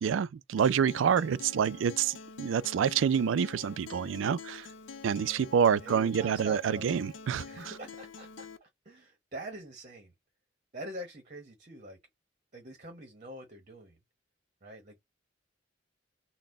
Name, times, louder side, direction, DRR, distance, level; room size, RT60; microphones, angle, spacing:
voice 1, 0.0-4.7 5.0-7.5, right 7 dB, 85° right, 0.3 m, -27 dB
Acoustic guitar, 0.6-8.6, left 4 dB, 90° left, 0.5 m, -47 dB
voice 2, 5.2-5.5 5.8-6.9 7.5-10.1 10.7-12.0 12.5-14.0 14.6-15.0, right 1 dB, 40° right, 1.0 m, -45 dB
4.0 x 2.1 x 3.7 m
head